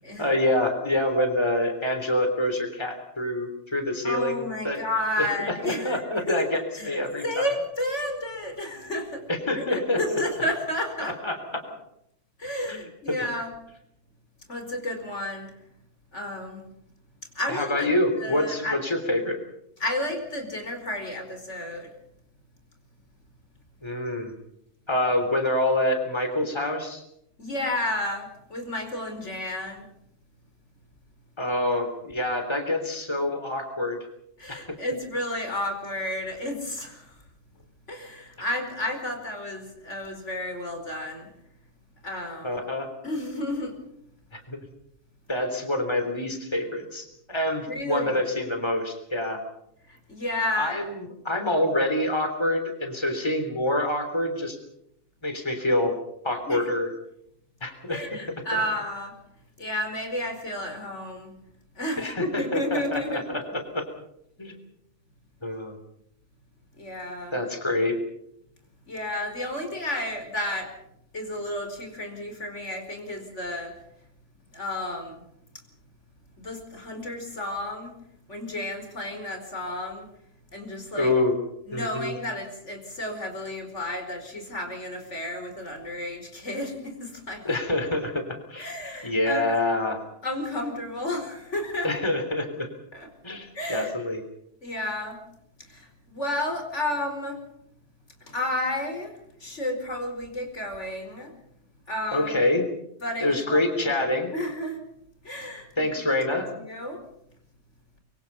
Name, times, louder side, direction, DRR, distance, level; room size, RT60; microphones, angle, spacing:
voice 1, 0.2-4.8 5.2-7.5 9.3-10.2 11.0-11.6 12.7-12.8 17.5-19.4 23.8-24.3 24.9-27.0 31.4-34.0 34.5-34.6 42.4-42.9 44.3-44.6 45.3-49.4 50.6-54.6 55.2-56.0 56.2-56.9 57.6-58.0 58.5-58.6 62.0-63.8 64.4-64.6 65.4-65.8 67.3-68.0 80.9-81.3 81.7-82.1 87.4-88.7 89.0-90.0 91.8-92.7 93.2-94.2 102.1-102.7 103.2-104.3 105.8-106.5, left 1 dB, 20° left, 6 dB, 3.6 m, -26 dB
voice 2, 4.0-6.0 6.3-9.2 9.5-11.2 12.4-13.5 14.5-15.5 16.1-16.6 17.3-17.9 18.2-18.8 19.8-21.9 27.4-29.8 34.4-37.0 37.9-41.3 42.0-42.5 43.0-43.7 47.7-48.2 50.1-50.8 56.5-56.6 57.9-59.2 59.6-61.3 61.8-63.2 66.8-67.4 68.9-70.7 71.1-73.7 74.5-75.2 76.4-77.9 78.3-80.1 80.5-81.1 81.7-87.4 88.6-89.5 90.2-91.9 92.9-93.9 94.6-95.2 95.7-97.4 98.3-99.1 99.4-101.3 101.9-102.3 103.0-104.0 104.3-104.8 105.2-105.7 106.1-106.2 106.6-107.0, left 1 dB, 75° left, 4 dB, 5.1 m, -31 dB
25.0 x 24.0 x 5.5 m, 0.75 s
omnidirectional pair, 1.2 m